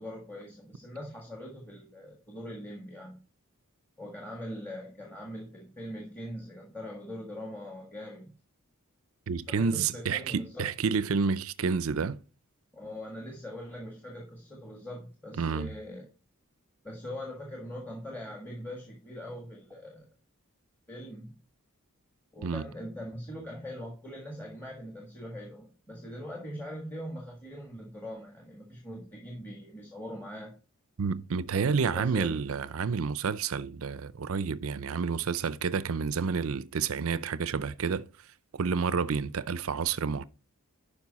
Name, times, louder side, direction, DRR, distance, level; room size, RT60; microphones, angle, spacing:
voice 1, 0.0-3.2 4.0-8.3 9.5-10.7 12.7-16.1 16.8-20.1 20.9-21.4 22.3-30.6 31.5-32.4, equal, 10° left, 1.6 m, -42 dB
voice 2, 9.3-12.2 15.4-15.7 22.4-22.6 31.0-38.1 38.5-40.2, right 5 dB, 70° right, 0.5 m, -29 dB
11.0 x 5.2 x 4.1 m
head